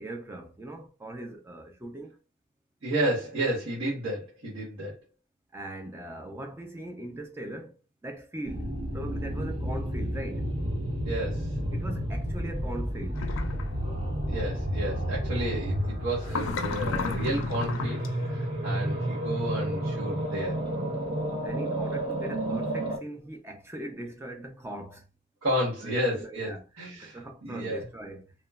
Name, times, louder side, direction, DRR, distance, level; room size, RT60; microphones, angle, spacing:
voice 1, 0.0-2.2 5.5-7.8 8.0-8.7 8.9-10.5 11.7-13.3 21.4-25.1 25.8-26.6 27.0-28.3, right 1 dB, 10° right, 0.3 m, -40 dB
voice 2, 2.8-5.0 11.0-11.5 14.3-20.6 25.4-27.9, right 1 dB, 80° right, 1.2 m, -31 dB
sound 1, 8.4-23.0, right 1 dB, 30° right, 0.7 m, -31 dB
sound 2, 13.1-13.7 16.3-18.1, left 4 dB, 75° left, 0.4 m, -32 dB
2.9 x 2.1 x 2.3 m
head